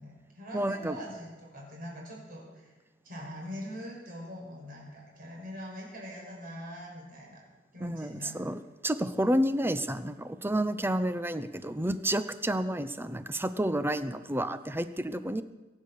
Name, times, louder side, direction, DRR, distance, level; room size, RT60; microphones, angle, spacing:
voice 1, 0.0-2.7 3.0-7.4 7.7-8.4, equal, 50° right, -2 dB, 6.0 m, -43 dB
voice 2, 0.5-1.0 7.8-15.4, right 1 dB, 10° right, 12 dB, 0.7 m, -30 dB
22.5 x 9.6 x 6.6 m, 1.1 s
head